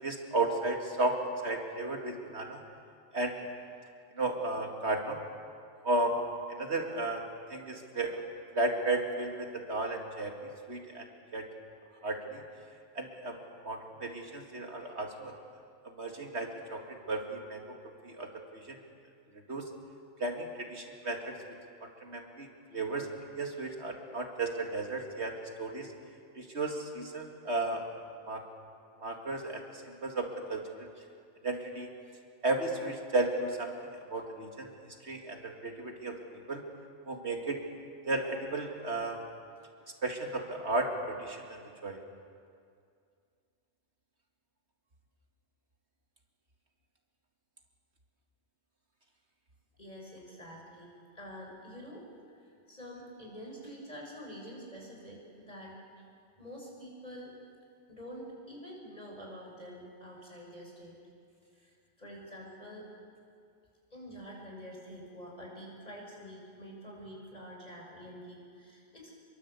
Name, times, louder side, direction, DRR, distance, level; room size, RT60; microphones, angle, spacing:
voice 1, 0.0-2.6 3.1-3.4 4.1-5.2 5.8-6.2 6.5-7.2 7.5-8.2 8.5-11.1 11.3-11.5 12.0-12.4 12.9-13.4 13.6-15.3 15.8-16.8 17.1-17.6 18.0-18.8 19.5-19.6 20.2-21.3 21.8-23.1 23.4-25.9 26.3-27.8 28.3-28.4 29.0-30.9 31.4-31.9 32.4-36.2 36.5-36.6 37.1-37.6 38.0-39.2 40.0-42.0, right 2 dB, 65° right, 2 dB, 2.7 m, -34 dB
voice 2, 49.8-56.1 56.4-57.4 57.9-61.0 61.5-62.9 63.9-69.2, equal, 35° left, -2 dB, 7.1 m, -47 dB
27.0 x 23.0 x 8.4 m, 2.3 s
omnidirectional pair, 1.2 m